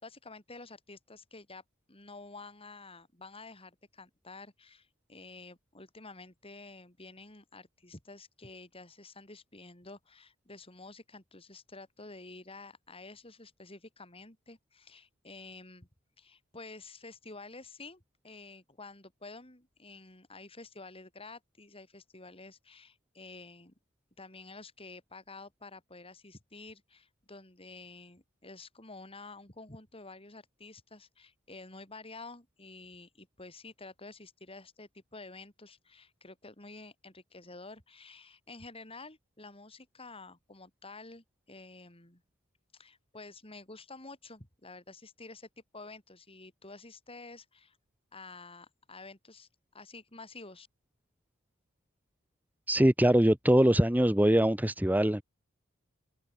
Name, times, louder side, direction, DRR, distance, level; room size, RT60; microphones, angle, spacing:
voice 1, 0.0-1.6 1.9-15.9 16.2-23.7 24.2-42.2 42.7-47.8 48.1-50.7, left 3 dB, 25° left, 4.9 m, -50 dB
voice 2, 52.7-55.2, right 1 dB, 10° right, 1.1 m, -23 dB
open air
head